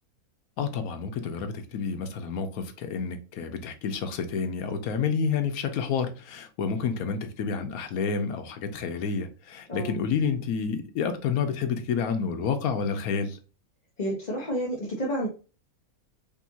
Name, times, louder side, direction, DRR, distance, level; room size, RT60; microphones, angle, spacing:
voice 1, 0.6-13.4, left 6 dB, 90° left, 1.2 m, -29 dB
voice 2, 14.0-15.3, equal, 35° left, 0.9 m, -30 dB
5.3 x 2.7 x 2.7 m
omnidirectional pair, 1.5 m